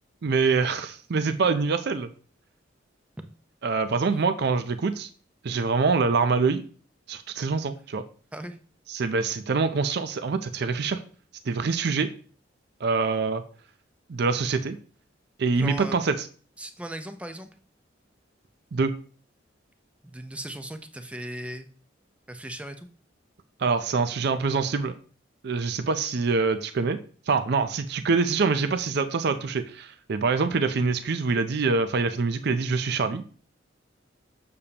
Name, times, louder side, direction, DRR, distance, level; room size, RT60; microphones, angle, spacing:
voice 1, 0.2-2.1 3.6-5.1 5.4-6.6 7.1-8.0 8.9-11.0 11.5-12.1 12.8-13.4 14.1-14.8 15.4-16.1 18.7-18.9 23.6-24.9 25.4-27.0 27.3-33.2, right 4 dB, 60° right, 10 dB, 0.5 m, -25 dB
voice 2, 15.6-16.0 16.6-17.5 20.0-21.7 22.3-22.9, right 1 dB, 5° right, 7 dB, 0.6 m, -37 dB
6.8 x 6.8 x 2.9 m, 0.42 s
head